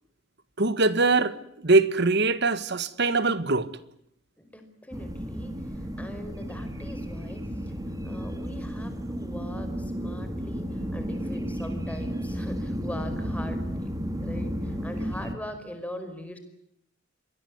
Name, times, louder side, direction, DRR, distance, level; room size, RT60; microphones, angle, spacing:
voice 1, 0.6-1.4 1.6-3.7, right 3 dB, 55° right, 1.7 m, -22 dB
voice 2, 4.4-7.7 8.0-13.9 14.2-16.4, left 1 dB, 5° left, 5.1 m, -41 dB
sound 1, 4.9-15.3, equal, 20° right, 2.8 m, -33 dB
27.0 x 21.5 x 9.7 m
head